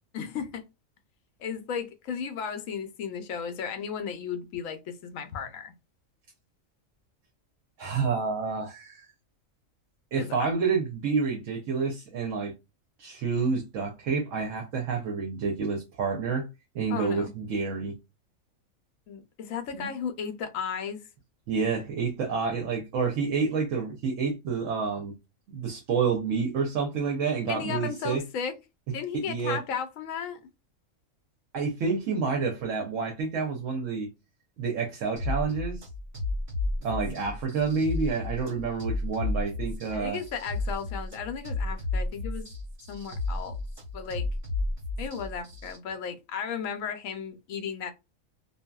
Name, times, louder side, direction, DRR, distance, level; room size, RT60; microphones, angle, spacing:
voice 1, 0.1-0.7 1.4-5.7 10.2-10.5 16.9-17.3 19.1-21.0 27.5-28.6 28.9-30.4 39.9-42.5 42.9-43.6 43.9-44.3 45.0-47.9, left 6 dB, 75° left, 1.0 m, -35 dB
voice 2, 7.8-9.1 10.1-12.5 13.0-16.5 16.7-17.9 19.7-19.9 21.5-25.1 25.5-28.2 29.1-29.6 31.5-34.1 34.6-35.8 36.8-40.2, right 5 dB, 70° right, 1.0 m, -29 dB
sound 1, 35.2-45.8, left 2 dB, 55° right, 1.6 m, -33 dB
2.7 x 2.5 x 2.2 m
omnidirectional pair, 1.4 m